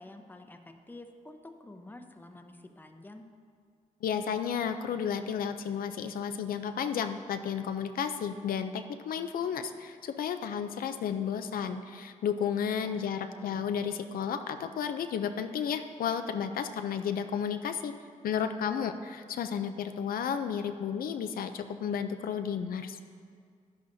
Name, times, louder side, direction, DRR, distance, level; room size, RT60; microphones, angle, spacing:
voice 1, 0.0-3.2 12.8-13.7, left 2 dB, 15° left, 5 dB, 0.7 m, -49 dB
voice 2, 4.0-18.0 18.2-23.0, left 7 dB, 85° left, 8 dB, 0.4 m, -32 dB
11.0 x 10.5 x 2.7 m, 2.1 s
cardioid pair, 90°, 15 cm